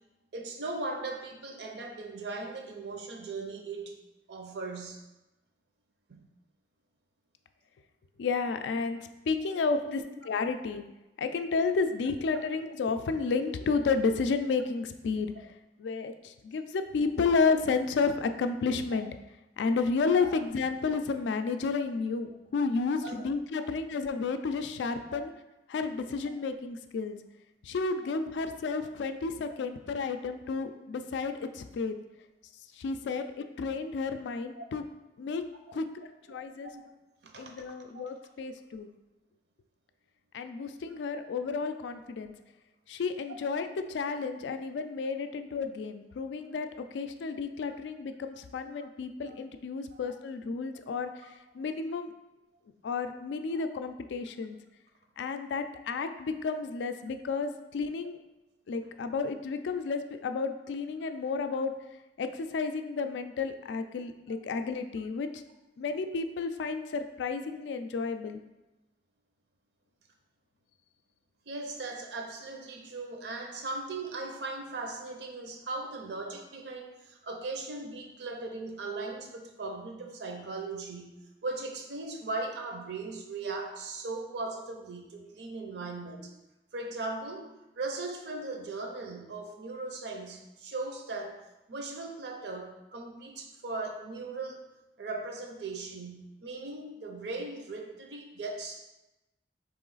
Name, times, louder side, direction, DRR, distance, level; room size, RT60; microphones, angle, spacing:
voice 1, 0.3-4.0 4.3-5.0 6.1-6.3 20.2-20.3 23.0-23.2 25.1-25.2 34.5-34.6 35.7-35.8 36.3-36.5 36.7-36.8 37.2-37.5 37.9-38.0 49.3-49.4 49.9-50.0 53.6-53.7 71.5-86.3 86.7-91.4 91.7-94.6 95.0-98.8, right 3 dB, 70° right, 3 dB, 0.6 m, -38 dB
voice 2, 8.2-9.0 9.3-10.0 10.3-10.8 11.2-15.5 15.8-19.1 19.6-25.3 25.7-27.2 27.6-31.9 32.7-33.2 33.6-34.8 35.2-35.4 35.7-35.9 36.3-36.7 37.4-38.9 40.3-42.3 42.9-52.1 52.8-54.6 55.2-58.2 58.7-61.7 62.2-65.4 65.8-68.4, left 4 dB, 80° left, 8 dB, 0.3 m, -31 dB
3.9 x 3.1 x 3.8 m, 0.99 s
head